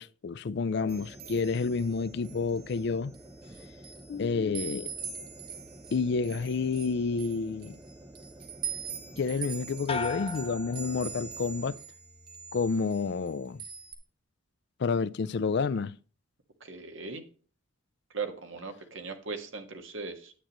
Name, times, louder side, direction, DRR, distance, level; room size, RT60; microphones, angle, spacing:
voice 1, 0.0-3.1 4.1-4.9 5.9-7.8 9.2-11.8 12.5-13.6 14.8-16.0, left 4 dB, 55° left, 0.4 m, -29 dB
sound 1, 0.8-11.9, right 1 dB, 15° right, 0.7 m, -50 dB
sound 2, 0.9-2.8 3.1-4.2 4.5-12.0 12.3-13.3 13.6-13.9, right 8 dB, 45° right, 1.8 m, -42 dB
sound 3, 9.9-11.6 12.0-12.6, left 4 dB, 30° left, 0.7 m, -38 dB
voice 2, 16.6-17.2 18.1-20.3, right 4 dB, 70° right, 1.6 m, -38 dB
10.0 x 8.8 x 3.0 m
head